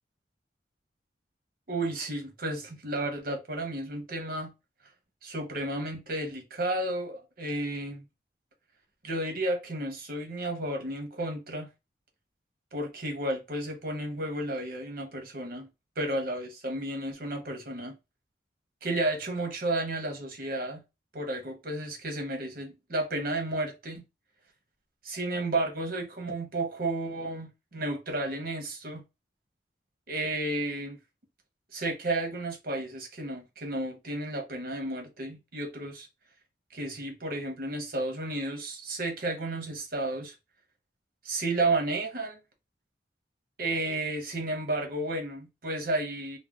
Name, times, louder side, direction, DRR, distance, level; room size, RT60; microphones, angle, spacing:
voice 1, 1.7-4.5 5.2-8.0 9.0-11.7 12.7-15.7 16.0-18.0 18.8-20.8 21.1-24.0 25.0-29.0 30.1-31.0 31.7-36.1 36.7-40.3 41.2-42.4 43.6-46.4, right 2 dB, 55° right, 0.9 m, -32 dB
2.6 x 2.2 x 3.4 m
head